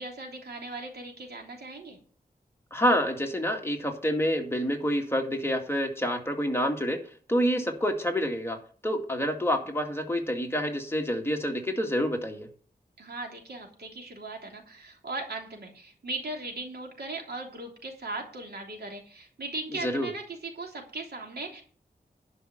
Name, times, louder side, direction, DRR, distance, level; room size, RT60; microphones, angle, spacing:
voice 1, 0.0-2.0 13.0-21.6, right 2 dB, 90° right, 1 dB, 3.3 m, -38 dB
voice 2, 2.7-7.0 7.3-8.6 8.8-12.5 19.8-20.1, equal, 15° left, 2 dB, 2.1 m, -27 dB
11.0 x 5.6 x 7.6 m, 0.43 s
wide cardioid pair, 85°, 16 cm